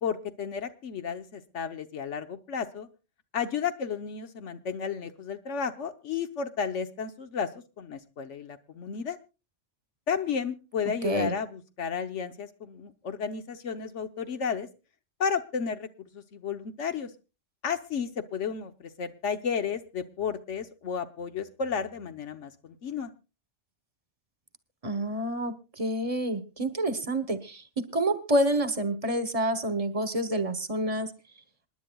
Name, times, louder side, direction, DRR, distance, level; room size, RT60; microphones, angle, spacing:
voice 1, 0.0-2.9 3.3-7.5 7.8-9.2 10.1-14.7 15.2-15.9 16.1-17.1 17.6-23.1, left 6 dB, 75° left, 9 dB, 1.3 m, -32 dB
voice 2, 11.0-11.3 24.8-31.1, right 1 dB, 30° right, 12 dB, 1.1 m, -28 dB
27.5 x 10.5 x 2.3 m, 0.29 s
omnidirectional pair, 1.2 m